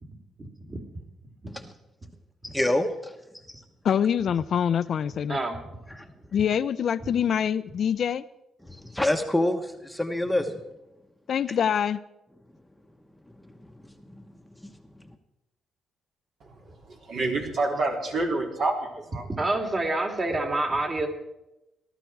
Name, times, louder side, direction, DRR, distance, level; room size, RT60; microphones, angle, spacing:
voice 1, 0.4-0.8 1.5-1.6 2.5-2.6 5.3-5.6 19.3-21.1, right 2 dB, 35° right, 3.2 m, -28 dB
voice 2, 2.4-3.1 3.5-3.6 5.9-6.0 8.9-10.6 14.6-14.7, left 1 dB, 5° left, 1.2 m, -26 dB
voice 3, 3.8-5.4 6.3-8.2 11.3-12.0, left 8 dB, 60° left, 0.6 m, -25 dB
voice 4, 17.1-19.3, right 2 dB, 60° right, 4.1 m, -27 dB
19.5 x 12.5 x 4.7 m
cardioid pair, 90°, 0 cm